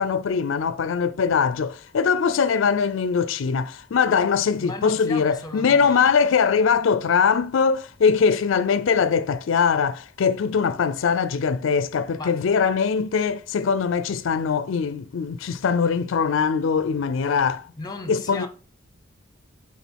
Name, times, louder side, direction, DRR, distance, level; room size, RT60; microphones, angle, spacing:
voice 1, 0.0-17.7 18.1-18.5, left 6 dB, 70° left, 0.4 m, -22 dB
voice 2, 4.6-6.1 12.2-12.4 17.8-18.5, left 3 dB, 20° left, 0.8 m, -35 dB
8.2 x 3.6 x 4.5 m
head